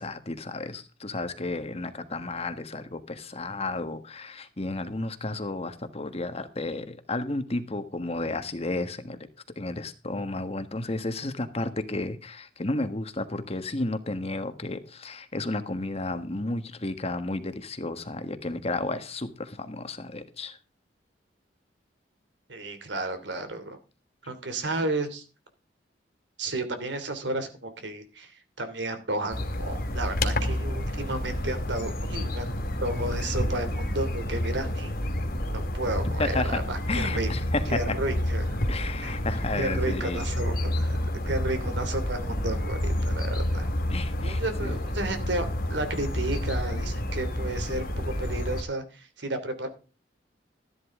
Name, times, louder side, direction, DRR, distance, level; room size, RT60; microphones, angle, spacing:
voice 1, 0.0-9.2 9.5-20.6 36.2-36.6 36.9-38.0 38.7-40.3 43.9-44.8, left 2 dB, 35° left, 9 dB, 1.5 m, -32 dB
voice 2, 22.5-23.8 24.3-25.2 26.4-32.5 32.8-34.9 35.5-37.3 37.7-38.6 39.0-39.1 39.6-41.0 41.3-43.7 44.2-49.7, right 2 dB, 80° right, 8 dB, 2.9 m, -32 dB
sound 1, 29.3-48.6, left 1 dB, 60° left, 2.7 m, -29 dB
13.0 x 11.5 x 3.7 m, 0.33 s
head